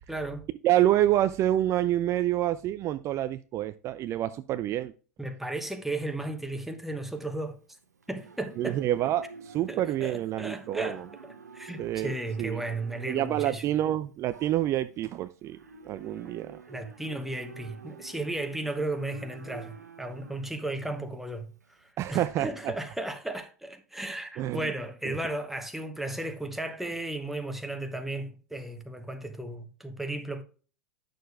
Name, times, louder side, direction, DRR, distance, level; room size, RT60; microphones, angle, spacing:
voice 1, 0.1-0.4 5.2-7.6 8.1-8.8 9.7-13.6 16.7-30.4, right 2 dB, 5° right, 1.0 m, -35 dB
voice 2, 0.6-4.9 8.6-11.1 11.8-12.6 13.1-15.6 15.8-16.6 22.0-22.7 24.4-24.7 25.1-25.2, right 13 dB, 35° right, 0.4 m, -27 dB
Livestock farm animals working animals, 7.1-21.9, right 5 dB, 90° right, 0.9 m, -49 dB
9.2 x 6.5 x 2.3 m
hypercardioid pair, 95°, 9 cm